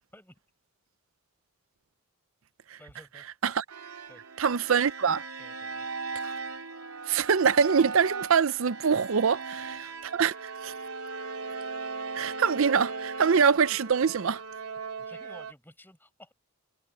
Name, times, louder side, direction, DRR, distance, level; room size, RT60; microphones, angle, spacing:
voice 1, 2.8-3.2 4.1-4.2 5.4-5.9 15.0-16.3, left 1 dB, 10° left, 6.2 m, -53 dB
sound 1, 3.7-15.5, right 4 dB, 90° right, 3.4 m, -38 dB
voice 2, 4.4-5.2 6.2-6.3 7.1-9.8 10.0-10.7 12.1-14.4, right 6 dB, 65° right, 0.5 m, -24 dB
head